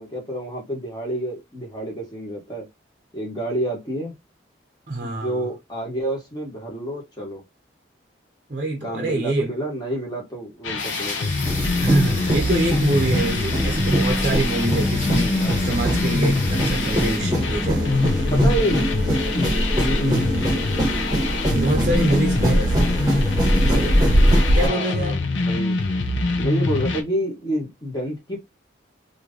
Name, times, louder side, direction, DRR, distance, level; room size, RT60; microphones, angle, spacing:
voice 1, 0.0-2.7 3.1-4.1 5.0-7.4 8.8-11.3 18.3-18.9 19.3-20.3 24.5-25.8 26.4-28.4, right 1 dB, 20° left, 1.4 m, -29 dB
voice 2, 4.9-5.5 8.5-9.5 11.8-18.3 21.5-23.0 23.6-24.1 24.5-25.2, right 1 dB, 40° right, 0.7 m, -25 dB
sound 1, 10.6-27.0, left 3 dB, 85° left, 0.6 m, -25 dB
sound 2, 10.8-17.2, left 3 dB, 45° left, 1.2 m, -33 dB
sound 3, 11.5-24.7, equal, 20° right, 1.2 m, -22 dB
3.1 x 2.6 x 3.7 m
head